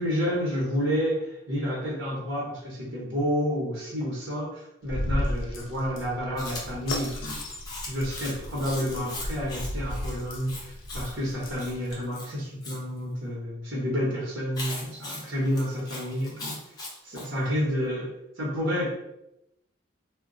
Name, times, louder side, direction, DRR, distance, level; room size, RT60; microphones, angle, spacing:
voice 1, 0.0-7.4 7.9-16.5 17.0-18.1 18.4-18.9, equal, 80° right, -5 dB, 0.9 m, -30 dB
sound 1, 4.8-12.0, left 1 dB, 85° left, 0.5 m, -35 dB
Chewing mastication, 6.4-12.8 14.5-17.3, left 2 dB, 20° left, 0.5 m, -40 dB
2.2 x 2.1 x 3.7 m, 0.87 s
head